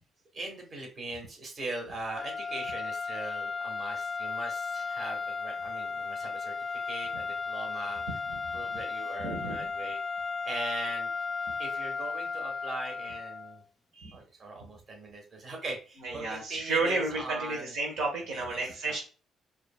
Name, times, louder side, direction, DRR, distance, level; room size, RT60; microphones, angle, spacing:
voice 1, 0.3-6.6 6.9-8.0 8.5-10.0 10.4-11.1 11.6-13.6 14.1-17.7 18.3-18.9, right 2 dB, 45° right, 2 dB, 1.6 m, -40 dB
sound 1, 2.1-13.6, left 4 dB, 25° left, 0.3 m, -35 dB
voice 2, 9.2-9.6 13.9-14.2 16.0-19.0, right 3 dB, 90° right, 0 dB, 1.3 m, -32 dB
4.8 x 3.0 x 2.2 m, 0.35 s
cardioid pair, 90°, 0 cm